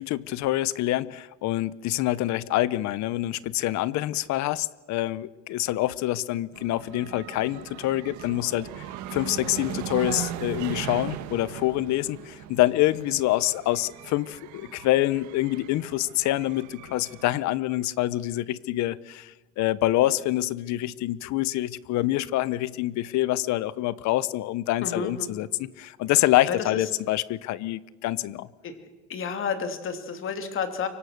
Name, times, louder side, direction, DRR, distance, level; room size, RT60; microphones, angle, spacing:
voice 1, 0.0-8.9 9.1-28.5, left 16 dB, 70° left, 19 dB, 0.9 m, -26 dB
sound 1, 6.5-17.6, right 11 dB, 75° right, 1.7 m, -38 dB
voice 2, 24.8-25.4 26.5-26.6 28.6-28.8 29.1-30.9, left 6 dB, 45° left, 7 dB, 2.8 m, -31 dB
24.5 x 24.0 x 6.6 m, 1.2 s
cardioid pair, 150°, 29 cm